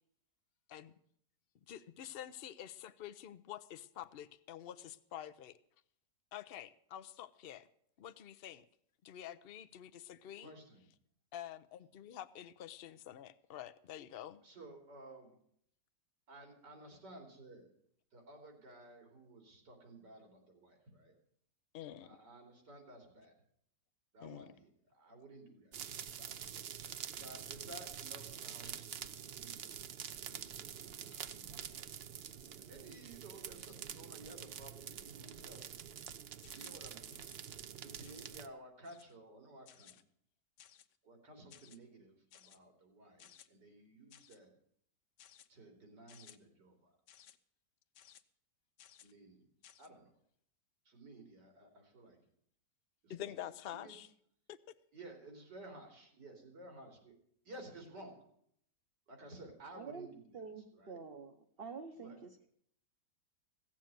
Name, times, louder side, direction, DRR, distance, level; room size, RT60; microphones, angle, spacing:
voice 1, 1.7-5.6 6.3-7.7 8.0-8.6 9.0-10.5 11.3-14.4 21.7-22.2 24.2-24.5 28.6-29.1 31.1-31.2 53.1-54.1 54.5-54.6, left 11 dB, 65° left, 12 dB, 0.5 m, -48 dB
voice 2, 10.4-10.8 14.4-15.3 16.3-17.7 18.1-21.1 22.0-23.3 24.1-24.7 24.9-26.6 27.2-29.7 30.1-35.6 36.5-37.2 37.8-39.9 41.0-44.5 45.5-46.8 49.0-49.4 49.8-50.1 50.9-52.2 53.0-53.1 53.8-53.9 54.9-57.1 57.5-58.2 59.1-60.3 60.7-61.0 62.0-62.2, right 1 dB, 85° right, 3 dB, 3.9 m, -55 dB
sound 1, 25.7-38.5, right 8 dB, 65° right, 0.6 m, -47 dB
sound 2, 36.4-36.8 37.1-37.4 38.0-38.4 38.8-39.2 39.7-40.0 40.6-41.0 41.5-41.8 42.3-42.6 43.2-43.5 44.1-44.4 45.2-45.5 46.1-46.4 47.1-47.4 47.9-48.2 48.8-49.1 49.6-49.9, left 10 dB, 80° left, 1.4 m, -60 dB
voice 3, 59.8-60.1 60.3-62.5, right 5 dB, 45° right, 4 dB, 0.9 m, -48 dB
16.0 x 7.4 x 9.1 m, 0.68 s
omnidirectional pair, 1.8 m